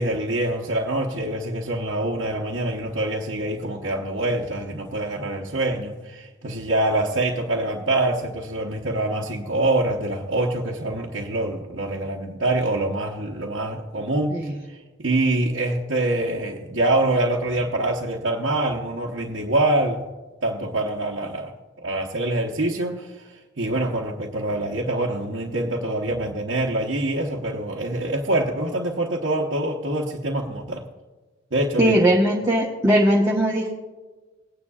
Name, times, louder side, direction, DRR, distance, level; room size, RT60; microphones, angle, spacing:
voice 1, 0.0-20.1 20.4-21.5 21.8-30.9 31.5-31.9, right 1 dB, 70° right, -3 dB, 0.9 m, -25 dB
voice 2, 31.8-33.7, right 1 dB, 15° right, -4 dB, 1.1 m, -19 dB
19.0 x 9.6 x 2.4 m, 1.3 s
head